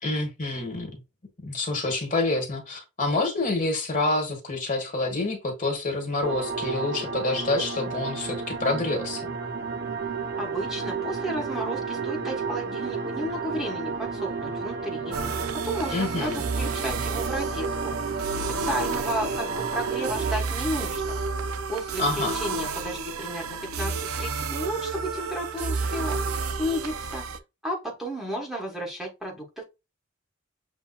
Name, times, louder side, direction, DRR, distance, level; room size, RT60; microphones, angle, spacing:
voice 1, 0.0-0.9 1.4-9.3 15.9-16.4 22.0-22.3, left 2 dB, 40° left, 1.4 m, -27 dB
sound 1, 6.2-20.4, right 4 dB, 50° right, 0.7 m, -32 dB
voice 2, 10.4-15.2 15.6-17.9 18.5-21.0 21.7-26.2 26.6-27.2 27.6-29.6, equal, ahead, 1.1 m, -33 dB
sound 2, 15.1-27.4, right 4 dB, 90° right, 0.5 m, -31 dB
7.1 x 2.7 x 2.3 m
head